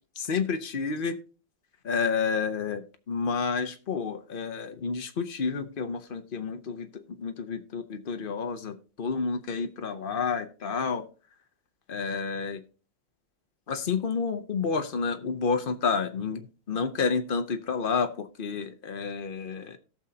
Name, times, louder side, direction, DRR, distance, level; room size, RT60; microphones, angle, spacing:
voice 1, 0.2-1.2 1.8-11.1 11.9-12.6 13.7-19.8, left 5 dB, 70° left, 7 dB, 0.5 m, -30 dB
17.5 x 6.4 x 2.8 m, 0.35 s
omnidirectional pair, 2.1 m